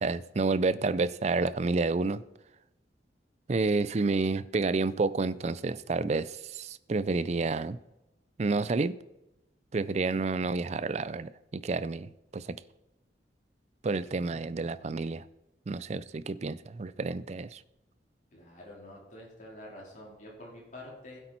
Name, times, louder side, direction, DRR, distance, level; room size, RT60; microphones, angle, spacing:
voice 1, 0.0-2.2 3.5-7.8 8.4-9.0 9.7-12.6 13.8-15.2 15.7-17.6, right 3 dB, 40° right, 0.4 m, -29 dB
voice 2, 14.1-14.5 18.3-21.2, left 1 dB, 45° left, 4.2 m, -48 dB
15.5 x 8.1 x 4.4 m
head